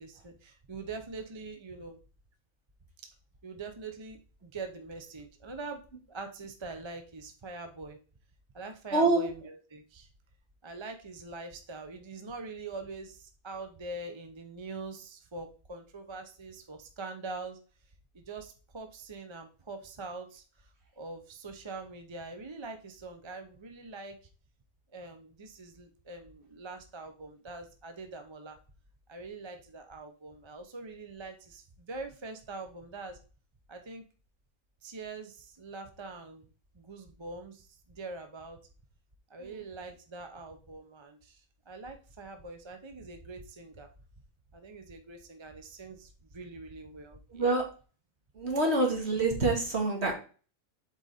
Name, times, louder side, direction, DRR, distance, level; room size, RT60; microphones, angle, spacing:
voice 1, 0.0-2.0 3.4-5.8 6.1-8.0 8.5-10.1 10.6-17.6 18.1-20.7 21.0-24.2 24.9-28.6 29.1-33.2 33.7-34.0 34.8-36.5 36.7-38.6 39.3-43.9 44.5-47.6, right 3 dB, 30° right, 6 dB, 0.6 m, -43 dB
voice 2, 8.9-9.3 47.3-47.6 48.4-50.1, right 2 dB, 45° right, 1 dB, 2.0 m, -26 dB
7.7 x 4.1 x 4.1 m, 0.37 s
omnidirectional pair, 1.6 m